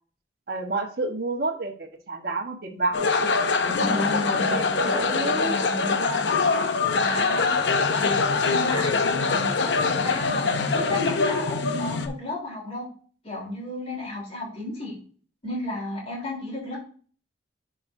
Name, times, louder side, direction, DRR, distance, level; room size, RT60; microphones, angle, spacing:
voice 1, 0.5-3.3 4.1-5.6, right 2 dB, 55° right, 1 dB, 1.2 m, -30 dB
sound 1, 2.9-12.1, left 4 dB, 70° left, 0.7 m, -23 dB
voice 2, 3.6-6.3 6.9-7.6 7.9-8.2 8.4-12.9 13.2-15.0 15.4-16.8, left 2 dB, 35° left, -3 dB, 3.5 m, -33 dB
10.5 x 5.2 x 2.6 m, 0.42 s
head